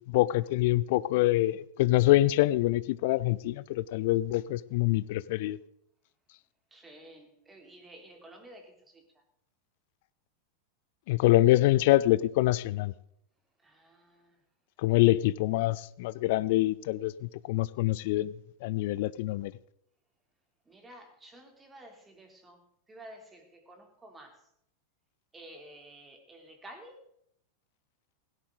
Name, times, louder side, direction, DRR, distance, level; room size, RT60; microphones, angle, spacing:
voice 1, 0.1-5.6 11.1-12.9 14.8-18.3 18.6-19.5, left 16 dB, 50° left, 0.6 m, -25 dB
voice 2, 6.7-9.0 13.6-14.4 20.7-22.6 22.9-24.4 25.3-27.0, right 1 dB, 15° right, 3.2 m, -51 dB
17.0 x 17.0 x 3.9 m
figure-of-eight pair, 90°, 0 cm